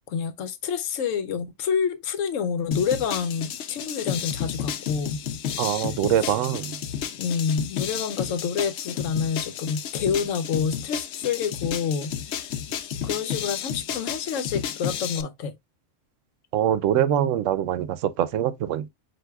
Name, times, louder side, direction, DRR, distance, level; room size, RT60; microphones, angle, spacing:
voice 1, 0.0-5.2 6.2-6.3 7.1-12.5 13.0-15.6, left 6 dB, 85° left, 1.1 m, -28 dB
sound 1, 2.7-15.2, left 9 dB, 70° left, 0.8 m, -32 dB
voice 2, 5.6-6.8 16.5-18.9, right 10 dB, 80° right, 0.9 m, -24 dB
7.8 x 2.6 x 2.2 m
omnidirectional pair, 1.3 m